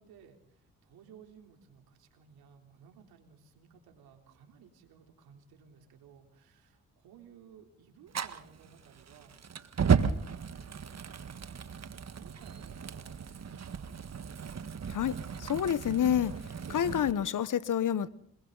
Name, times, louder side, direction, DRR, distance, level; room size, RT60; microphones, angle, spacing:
voice 1, 0.0-11.8 12.1-13.9, right 7 dB, 85° right, 3.7 m, -58 dB
Fire, 8.1-17.1, right 6 dB, 45° right, 1.6 m, -34 dB
voice 2, 14.9-16.3 16.7-18.1, left 9 dB, 60° left, 1.2 m, -28 dB
29.5 x 21.5 x 4.1 m
supercardioid pair, 50°, 36 cm